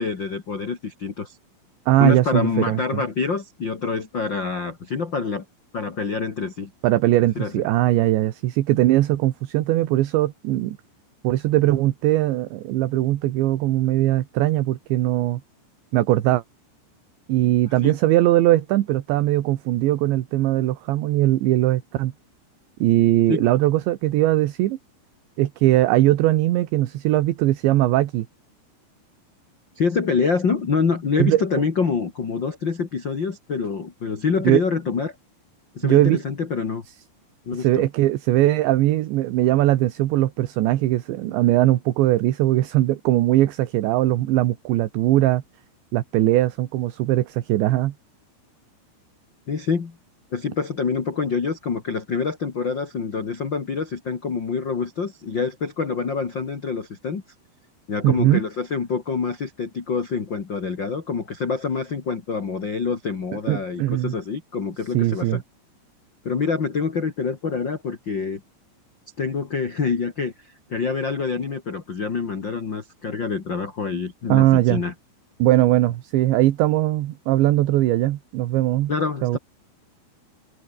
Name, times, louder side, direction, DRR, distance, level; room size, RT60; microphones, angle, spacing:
voice 1, 0.0-1.4 2.0-5.4 5.7-6.7 7.3-7.5 17.8-18.0 23.3-23.5 29.7-35.1 35.7-36.8 37.4-37.9 49.5-49.9 50.3-57.2 57.9-65.4 66.2-68.4 69.2-74.9 78.9-79.4, left 5 dB, 55° left, 1.2 m, -26 dB
voice 2, 1.9-3.0 6.8-10.8 11.2-15.4 15.9-16.4 17.3-22.1 22.8-24.8 25.4-28.3 31.2-31.4 34.4-34.6 35.8-36.2 37.5-45.4 45.9-47.9 58.0-58.4 63.5-64.2 64.9-65.4 74.3-74.8 75.4-78.9 79.2-79.4, right 15 dB, 70° right, 3.3 m, -20 dB
open air
omnidirectional pair, 5.9 m